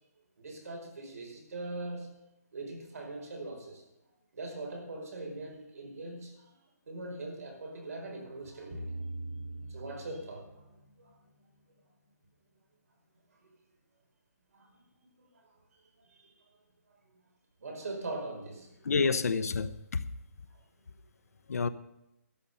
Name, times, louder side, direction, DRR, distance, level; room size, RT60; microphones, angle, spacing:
voice 1, 0.4-2.1 2.5-3.8 4.3-6.5 6.9-9.0 9.7-10.7 11.0-11.1 14.5-14.7 15.1-15.4 16.0-16.3 17.6-18.7, right 2 dB, 65° right, 5.0 m, -41 dB
sound 1, 8.7-11.1, right 1 dB, 30° right, 5.8 m, -41 dB
voice 2, 18.8-20.0 21.5-21.7, left 4 dB, 65° left, 0.9 m, -28 dB
13.0 x 10.5 x 5.5 m
hypercardioid pair, 180°, 9 cm